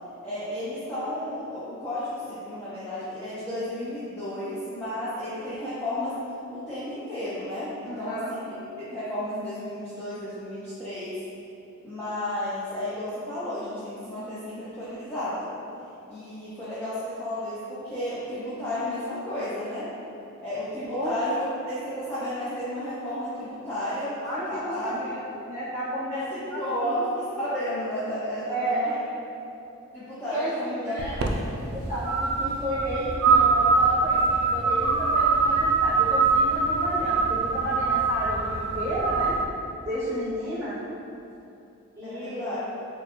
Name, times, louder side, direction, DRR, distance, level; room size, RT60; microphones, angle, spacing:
voice 1, 0.2-6.2 6.5-11.2 11.8-15.5 16.1-19.9 20.4-24.1 24.5-24.9 26.1-29.0 29.9-31.0 31.3-31.4 42.0-42.6, left 1 dB, 10° left, -14 dB, 0.5 m, -33 dB
voice 2, 7.8-8.3 20.9-21.1 24.2-26.2 26.5-27.0 28.5-28.9 30.3-31.1 31.7-32.1 32.4-39.3 39.8-40.8 41.9-42.4, right 1 dB, 10° right, -15 dB, 1.3 m, -31 dB
sound 1, 31.0-39.4, right 4 dB, 70° right, 0.3 m, -23 dB
4.2 x 2.2 x 2.9 m, 2.8 s
head